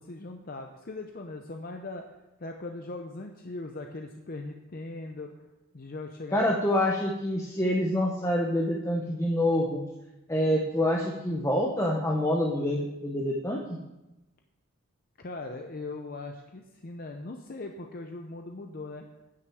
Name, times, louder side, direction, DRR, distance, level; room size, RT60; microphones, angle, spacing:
voice 1, 0.0-5.3 5.7-6.4 15.2-19.1, left 2 dB, 45° left, 4 dB, 0.6 m, -40 dB
voice 2, 6.3-9.8 10.3-13.8, left 1 dB, 15° left, -2 dB, 0.8 m, -26 dB
9.6 x 6.2 x 7.0 m, 1.0 s
head